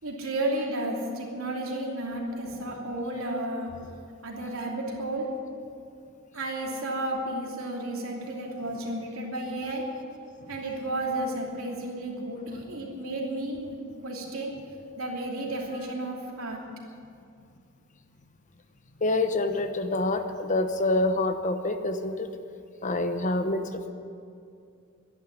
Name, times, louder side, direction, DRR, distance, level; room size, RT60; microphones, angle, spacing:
voice 1, 0.0-3.7 4.2-5.3 6.3-9.8 10.5-14.5 15.0-16.6, right 1 dB, 85° right, -1 dB, 3.0 m, -32 dB
voice 2, 19.0-22.3 22.8-23.9, left 2 dB, 35° left, 8 dB, 0.9 m, -26 dB
12.0 x 11.0 x 10.0 m, 2.4 s
head